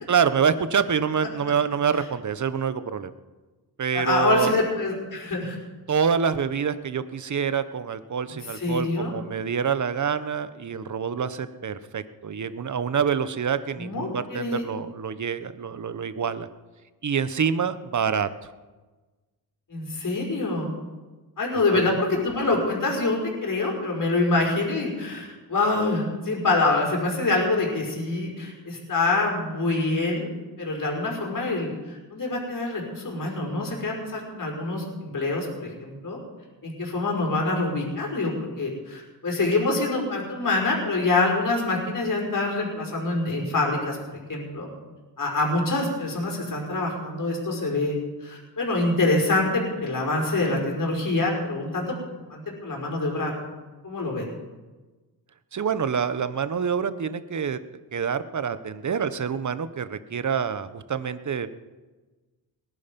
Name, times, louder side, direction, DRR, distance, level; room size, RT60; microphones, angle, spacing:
voice 1, 0.1-3.1 3.8-4.5 5.9-16.5 17.0-18.3 21.7-22.0 55.5-57.6 57.9-61.5, right 6 dB, 45° right, 13 dB, 1.1 m, -26 dB
voice 2, 3.9-5.6 8.5-9.1 13.8-14.6 19.7-20.7 21.4-30.3 30.6-36.2 36.6-44.0 44.3-44.7 45.2-51.9 52.3-53.3 53.8-54.3, left 2 dB, 50° left, -1 dB, 5.2 m, -25 dB
19.5 x 11.0 x 5.4 m, 1.3 s
cardioid pair, 70°, 41 cm